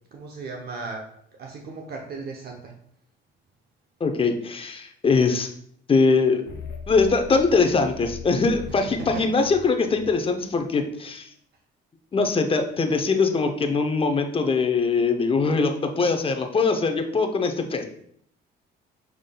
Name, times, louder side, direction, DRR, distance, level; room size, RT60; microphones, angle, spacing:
voice 1, 0.1-1.1 1.4-2.7, right 3 dB, 50° right, 1 dB, 0.7 m, -36 dB
voice 2, 4.0-5.5 5.9-6.4 6.9-11.3 12.1-17.8, left 4 dB, 25° left, 5 dB, 0.6 m, -22 dB
sound 1, 6.5-10.6, left 5 dB, 60° left, 0.8 m, -40 dB
5.4 x 3.5 x 2.2 m, 0.66 s
cardioid pair, 85°, 21 cm